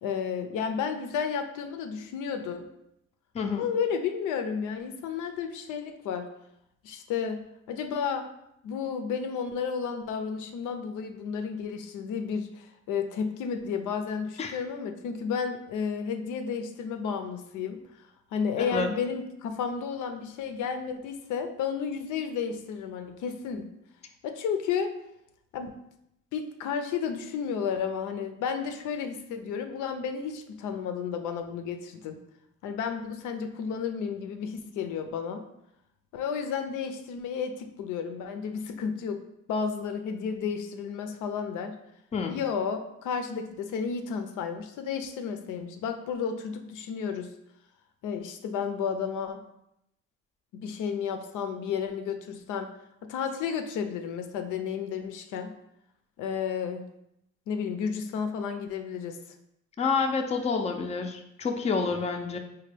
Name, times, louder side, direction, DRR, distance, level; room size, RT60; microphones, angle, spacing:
voice 1, 0.0-2.7 3.6-6.3 6.8-7.4 7.7-8.3 8.6-17.8 18.3-23.7 24.2-24.9 25.5-25.8 26.3-32.2 32.6-35.5 36.1-39.2 39.5-41.8 42.3-47.3 48.0-49.4 50.5-52.7 53.0-55.5 56.2-56.8 57.5-59.2, left 6 dB, 80° left, 7 dB, 0.5 m, -32 dB
voice 2, 3.3-3.7 14.4-14.5 18.7-18.9 42.1-42.4 59.8-62.4, left 5 dB, 20° left, 4 dB, 0.4 m, -28 dB
4.3 x 2.2 x 3.3 m, 0.80 s
cardioid pair, 100°, 30 cm